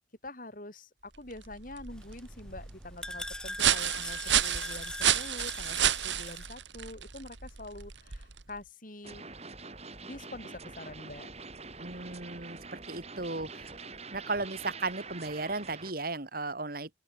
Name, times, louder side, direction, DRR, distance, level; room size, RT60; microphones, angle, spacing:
voice 1, 0.2-9.2 10.0-11.3, left 1 dB, 45° left, 5.0 m, -46 dB
sound 1, 1.1-8.6, right 10 dB, 70° right, 1.8 m, -31 dB
sound 2, 1.9-6.5, left 1 dB, 5° left, 2.5 m, -41 dB
sound 3, 9.0-15.9, right 4 dB, 35° right, 5.8 m, -45 dB
voice 2, 11.8-13.7 14.1-16.9, right 3 dB, 50° right, 2.2 m, -35 dB
open air
head